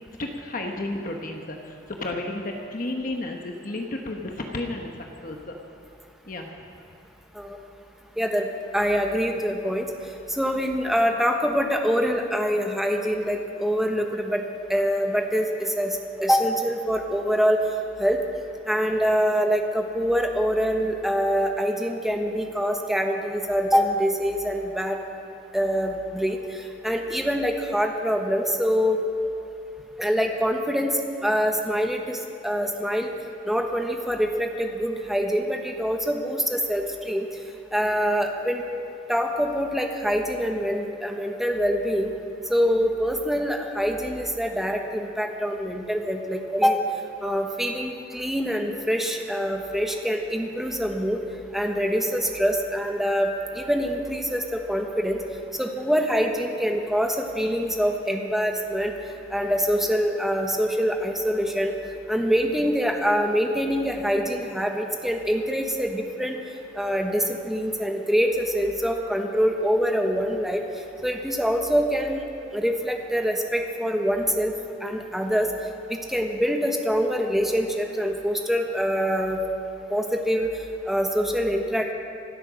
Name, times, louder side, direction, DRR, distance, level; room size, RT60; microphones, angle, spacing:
voice 1, 0.2-4.9 5.2-5.6 6.3-6.5, left 2 dB, 50° left, 2 dB, 1.1 m, -32 dB
voice 2, 8.2-8.5 8.7-9.8 10.3-14.4 14.7-17.6 18.0-18.2 18.7-25.0 25.5-26.4 26.8-29.0 30.0-32.2 32.4-33.1 33.5-37.3 37.7-38.6 39.1-42.1 42.5-46.8 47.2-51.2 51.5-55.2 55.6-58.9 59.3-61.7 62.1-66.3 66.8-70.6 71.0-72.2 72.5-74.5 74.8-75.5 75.9-79.4 79.9-80.5 80.9-81.9, equal, ahead, 2 dB, 1.2 m, -24 dB
25.5 x 8.6 x 6.3 m, 2.7 s
head